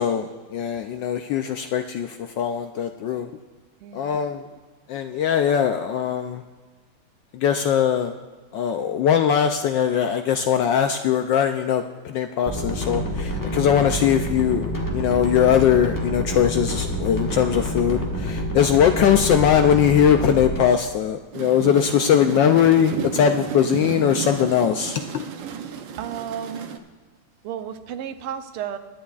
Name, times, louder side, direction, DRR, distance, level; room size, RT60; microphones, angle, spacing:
voice 1, 0.0-3.3 3.9-4.5 4.9-6.4 7.3-8.1 8.5-25.3, left 8 dB, 75° left, 7 dB, 1.0 m, -21 dB
voice 2, 3.8-4.3 13.5-13.6 26.0-26.7 27.4-28.8, right 9 dB, 85° right, 9 dB, 1.6 m, -33 dB
sound 1, 12.5-20.6, equal, 10° left, 1.1 m, -27 dB
sound 2, 21.3-26.8, right 7 dB, 70° right, 1.3 m, -32 dB
21.0 x 10.5 x 2.4 m, 1.3 s
omnidirectional pair, 2.4 m